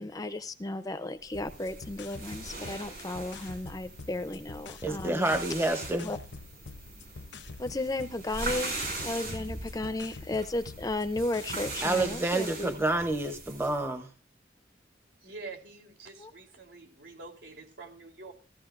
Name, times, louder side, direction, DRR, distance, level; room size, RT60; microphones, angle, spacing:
voice 1, 0.0-5.3 6.0-6.2 7.6-12.9 16.2-16.3, left 2 dB, 20° left, 0.5 m, -34 dB
sound 1, 1.3-12.5, left 3 dB, 80° left, 0.8 m, -47 dB
sound 2, 1.3-13.8, right 2 dB, 55° right, 6.4 m, -40 dB
voice 2, 4.8-6.1 11.8-14.1, right 2 dB, 15° right, 0.8 m, -28 dB
voice 3, 15.2-18.3, right 3 dB, 75° right, 3.4 m, -46 dB
15.5 x 14.5 x 2.5 m
head